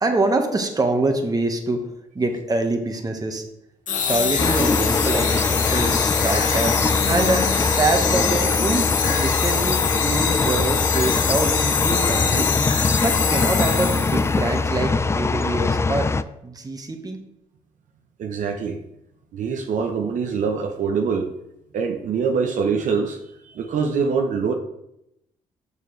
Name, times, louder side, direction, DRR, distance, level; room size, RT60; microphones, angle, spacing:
voice 1, 0.0-1.9 2.1-3.4 4.1-8.9 9.2-12.5 12.9-16.1 16.4-17.2, right 2 dB, 25° right, 4 dB, 1.3 m, -25 dB
sound 1, 3.9-14.4, left 7 dB, 65° left, 0.8 m, -24 dB
sound 2, 4.4-16.2, left 3 dB, 20° left, 0.4 m, -22 dB
voice 2, 18.2-18.8 19.3-21.3 21.7-23.2 23.4-24.5, right 5 dB, 65° right, 3 dB, 0.8 m, -24 dB
6.8 x 6.6 x 3.2 m, 0.81 s
supercardioid pair, 65°, 14 cm